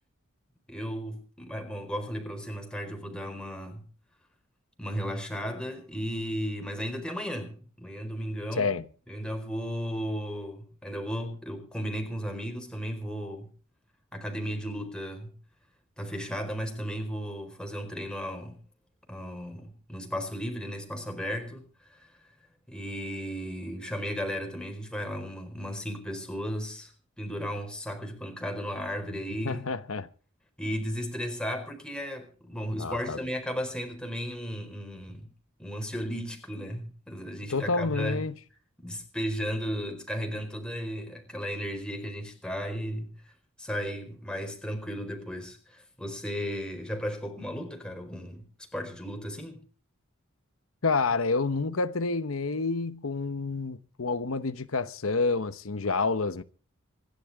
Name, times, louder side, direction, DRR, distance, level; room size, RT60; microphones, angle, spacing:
voice 1, 0.7-3.8 4.8-8.7 9.1-13.5 14.1-15.3 16.0-18.6 19.1-22.1 22.7-26.9 27.2-29.6 30.6-35.3 35.6-38.2 38.8-43.1 43.6-48.5 48.7-49.6, equal, 5° left, 4.5 m, -35 dB
voice 2, 8.5-8.9 29.4-30.1 32.8-33.2 37.5-38.3 50.8-56.4, left 4 dB, 85° left, 1.0 m, -28 dB
26.0 x 12.0 x 3.5 m
head